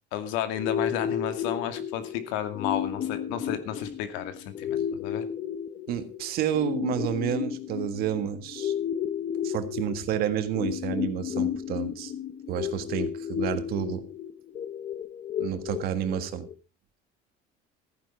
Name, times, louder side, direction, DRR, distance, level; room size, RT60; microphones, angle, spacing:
voice 1, 0.1-5.2, left 10 dB, 90° left, 9 dB, 2.3 m, -32 dB
sound 1, 0.6-16.5, left 9 dB, 35° left, 1.1 m, -33 dB
voice 2, 5.9-8.7 9.4-12.1 12.5-14.1 15.4-16.5, right 10 dB, 55° right, 9 dB, 1.8 m, -30 dB
14.5 x 10.0 x 4.6 m, 0.31 s
cardioid pair, 160°, 19 cm